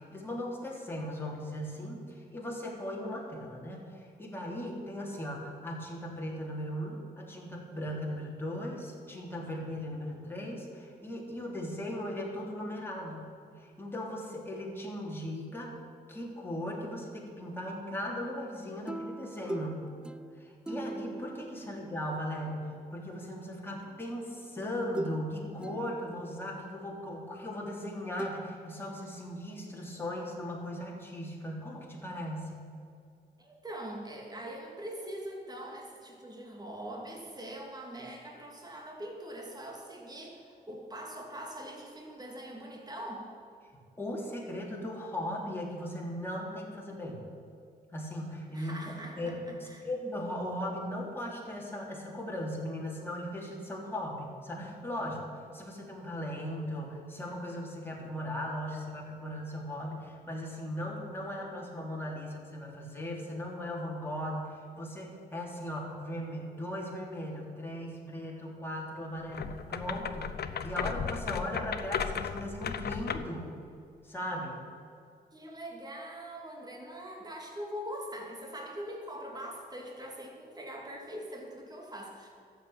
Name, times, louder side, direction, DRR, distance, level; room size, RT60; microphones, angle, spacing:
voice 1, 0.0-15.7 16.1-19.9 20.4-32.6 44.0-47.2 47.9-48.8 49.2-73.5 74.0-74.6, left 1 dB, 15° left, -3 dB, 3.4 m, -38 dB
sound 1, 18.9-22.5 23.8-24.0 25.0-25.3 25.6-26.4 28.2-28.3, right 2 dB, 5° right, 0.3 m, -41 dB
voice 2, 33.4-43.3 48.5-49.9 75.3-82.3, right 1 dB, 25° right, 0 dB, 2.6 m, -43 dB
sound 2, 69.3-73.4, left 7 dB, 70° left, 0.8 m, -35 dB
13.0 x 7.8 x 8.7 m, 2.3 s
cardioid pair, 90°, 17 cm